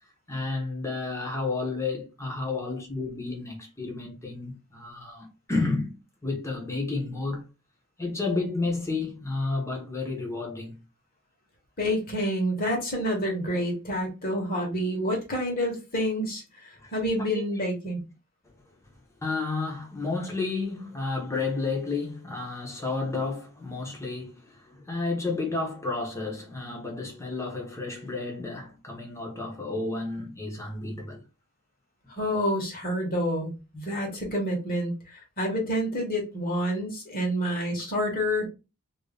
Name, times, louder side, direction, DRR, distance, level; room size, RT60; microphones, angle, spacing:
voice 1, 0.3-7.5 8.0-10.8 16.8-17.0 17.3-17.4 19.2-31.2, left 3 dB, 15° left, 1.0 m, -31 dB
voice 2, 11.8-18.0 32.1-38.5, equal, 40° left, 1.4 m, -28 dB
3.0 x 2.7 x 3.4 m
head